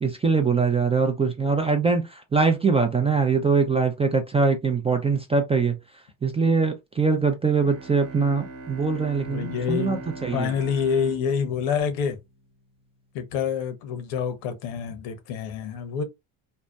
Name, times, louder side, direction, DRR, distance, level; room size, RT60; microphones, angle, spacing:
voice 1, 0.0-5.8 6.2-10.5, right 4 dB, 15° right, 0.3 m, -23 dB
Bowed string instrument, 7.6-12.5, right 3 dB, 30° right, 0.9 m, -41 dB
voice 2, 9.3-12.2 13.1-16.0, left 7 dB, 85° left, 0.8 m, -27 dB
2.7 x 2.1 x 2.2 m
supercardioid pair, 80°, 47 cm